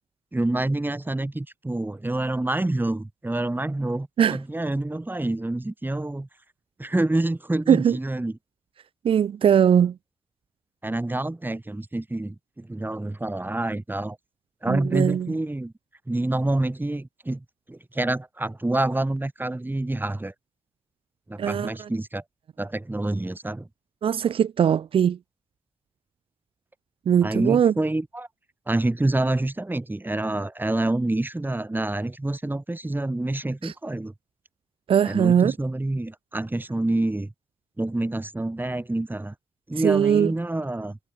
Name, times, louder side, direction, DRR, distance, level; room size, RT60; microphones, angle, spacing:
voice 1, 0.3-6.3 6.8-8.3 10.8-14.2 14.6-15.7 16.1-20.3 21.3-22.2 22.6-23.7 27.2-28.3 28.7-34.1 35.0-37.3 37.8-39.3 39.7-41.0, right 2 dB, 20° right, 2.6 m, -27 dB
voice 2, 9.0-9.9 14.7-15.3 21.4-21.9 24.0-25.2 27.1-27.7 33.6-33.7 34.9-35.5 39.8-40.3, right 8 dB, 85° right, 0.7 m, -20 dB
cardioid pair, 50°, 9 cm